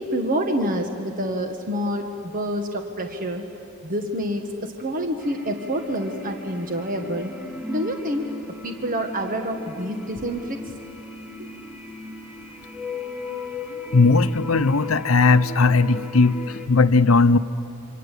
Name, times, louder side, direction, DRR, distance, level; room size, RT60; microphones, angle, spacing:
voice 1, 0.0-3.4 3.8-7.3 7.7-8.3 8.6-10.6 11.4-11.5, equal, 40° right, 4 dB, 1.5 m, -27 dB
sound 1, 5.2-16.7, left 3 dB, 5° right, 2.4 m, -37 dB
voice 2, 13.9-17.4, left 3 dB, 80° left, 11 dB, 0.8 m, -18 dB
27.5 x 25.5 x 8.4 m, 2.6 s
head